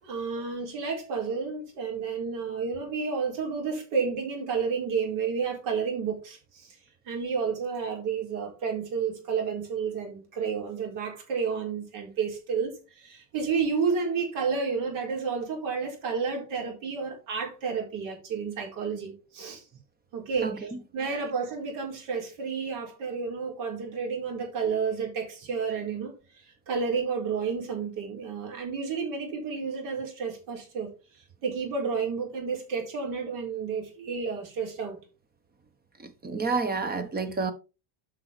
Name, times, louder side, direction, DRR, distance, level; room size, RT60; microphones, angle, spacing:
voice 1, 0.0-6.8 7.1-19.6 20.1-26.1 26.4-30.9 31.4-35.0, right 5 dB, 85° right, 4.4 m, -31 dB
voice 2, 36.0-37.5, right 4 dB, 20° right, 1.1 m, -29 dB
8.3 x 5.8 x 4.5 m
cardioid pair, 140°, 49 cm